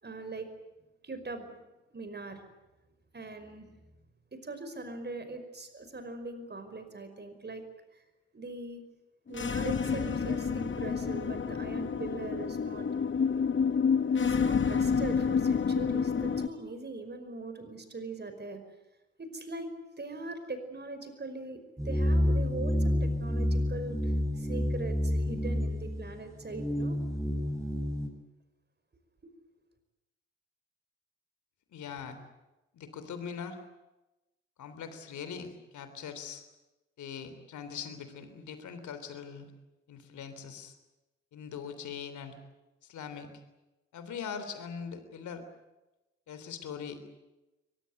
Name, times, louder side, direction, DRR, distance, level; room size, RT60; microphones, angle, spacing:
voice 1, 0.0-0.5 1.0-1.5 1.9-2.4 3.1-3.7 4.3-7.6 7.9-8.0 8.3-8.8 9.3-12.9 14.1-18.6 19.2-19.7 20.0-21.6 21.8-27.0 29.2-29.3, right 2 dB, 30° right, 8 dB, 5.4 m, -41 dB
sound 1, 9.3-16.5, left 6 dB, 35° left, 1.5 m, -29 dB
sound 2, 21.8-28.1, left 1 dB, 10° right, 7.8 m, -29 dB
voice 2, 31.7-32.2 32.7-33.6 34.6-36.4 37.0-39.5 39.9-40.8 41.3-42.4 42.8-43.3 43.9-45.4 46.3-47.0, left 7 dB, 60° left, 10 dB, 3.5 m, -41 dB
23.0 x 21.5 x 9.5 m, 1.0 s
hypercardioid pair, 40°, 32 cm